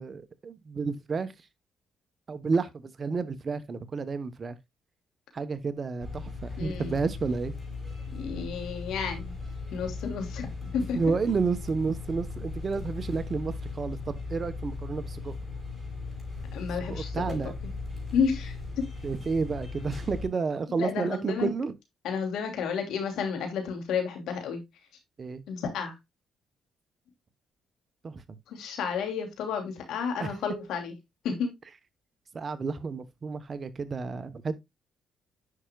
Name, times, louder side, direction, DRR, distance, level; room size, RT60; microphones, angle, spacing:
voice 1, 0.0-1.3 2.3-4.6 5.3-7.5 10.9-15.3 16.9-17.5 19.0-21.7 25.2-25.4 28.0-28.4 30.2-30.3 32.3-34.5, right 4 dB, 40° right, 1.0 m, -31 dB
sound 1, 6.0-20.3, left 3 dB, 5° left, 5.2 m, -38 dB
voice 2, 6.6-6.9 8.1-9.4 9.7-11.0 16.5-17.5 18.1-18.8 20.8-21.5 22.0-24.6 25.5-25.9 28.5-30.9 31.2-31.5, left 6 dB, 80° left, 2.8 m, -31 dB
9.8 x 5.8 x 2.3 m
cardioid pair, 90°, 0 cm